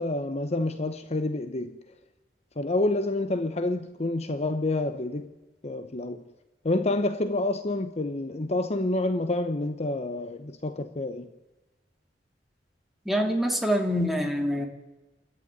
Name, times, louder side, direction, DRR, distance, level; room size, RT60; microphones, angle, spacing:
voice 1, 0.0-1.8 2.6-5.3 5.6-6.2 6.6-11.3, left 2 dB, 40° left, 0.9 m, -28 dB
voice 2, 13.1-14.7, equal, ahead, 2.7 m, -25 dB
28.0 x 14.0 x 9.6 m
head